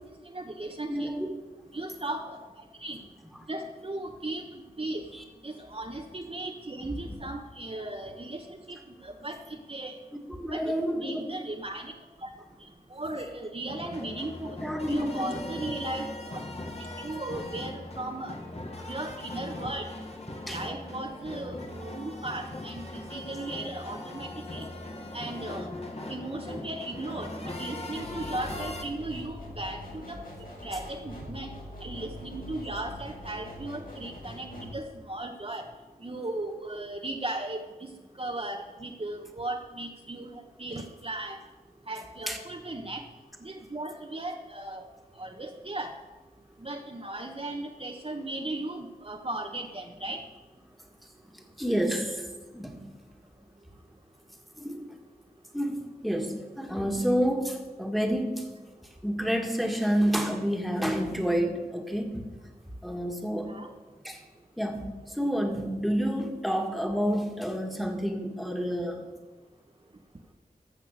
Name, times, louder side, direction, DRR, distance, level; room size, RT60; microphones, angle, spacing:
voice 1, 0.2-1.1 1.7-2.4 2.8-3.0 3.5-5.0 5.4-10.0 10.5-11.9 12.2-12.3 12.6-14.6 14.9-16.1 17.0-18.4 18.9-19.9 20.5-24.7 25.1-25.7 26.1-30.2 30.6-31.5 31.8-35.7 36.0-37.6 38.2-41.4 41.9-43.0 43.4-44.8 45.2-46.0 46.6-50.2 63.4-63.7, right 2 dB, 35° right, 3 dB, 1.0 m, -37 dB
voice 2, 0.9-1.3 5.1-5.2 6.9-7.0 10.3-11.4 14.6-15.4 20.5-20.6 42.3-42.4 51.3-52.9 54.6-54.9 55.5-58.5 59.0-62.3 62.8-63.6 64.0-64.2 64.6-69.0, equal, ahead, 3 dB, 1.8 m, -29 dB
sound 1, 13.7-28.8, left 1 dB, 40° left, 1.8 m, -39 dB
sound 2, 27.9-34.8, left 1 dB, 60° left, 4.6 m, -43 dB
14.0 x 6.5 x 6.4 m, 1.2 s
wide cardioid pair, 55°, 17 cm